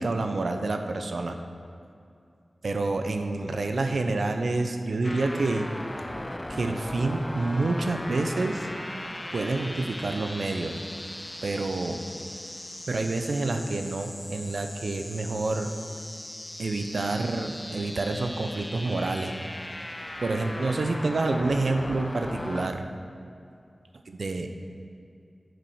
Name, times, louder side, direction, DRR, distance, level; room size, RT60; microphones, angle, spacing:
voice 1, 0.0-1.4 2.6-5.7 6.5-8.7 9.3-10.8 11.4-12.0 12.9-15.7 16.6-19.3 20.2-22.8 24.1-24.6, right 2 dB, 80° right, 6 dB, 0.5 m, -28 dB
sound 1, 5.0-22.7, left 1 dB, 20° left, 0.3 m, -38 dB
7.6 x 5.0 x 4.9 m, 2.5 s
cardioid pair, 40°, 0 cm